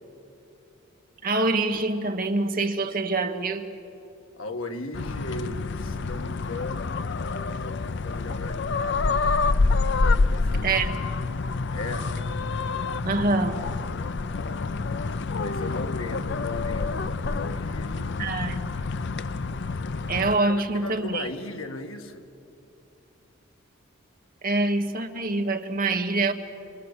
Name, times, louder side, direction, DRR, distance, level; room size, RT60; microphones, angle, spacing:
voice 1, 1.2-3.7 10.6-10.9 13.0-13.6 18.2-18.6 20.1-21.3 24.4-26.3, right 2 dB, 45° right, 5 dB, 1.5 m, -25 dB
voice 2, 4.4-9.2 10.0-10.8 11.7-12.1 15.3-18.2 20.3-22.3, left 2 dB, 75° left, 5 dB, 1.8 m, -37 dB
sound 1, 4.9-20.4, left 3 dB, 55° left, 0.6 m, -27 dB
27.0 x 25.0 x 8.3 m, 2.7 s
head